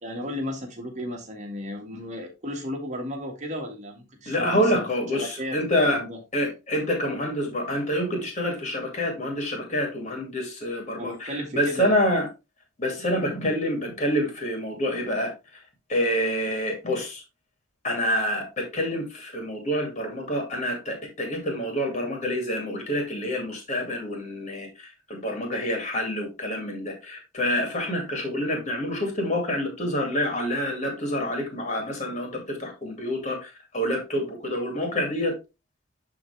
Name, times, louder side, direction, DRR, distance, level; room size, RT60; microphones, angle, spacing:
voice 1, 0.0-4.9 5.1-6.2 11.0-12.0, equal, 35° right, 1.8 m, -34 dB
voice 2, 4.3-6.0 6.3-12.3 12.8-15.3 15.9-17.2 17.8-35.3, equal, 35° left, 2.5 m, -27 dB
10.5 x 3.7 x 3.4 m
head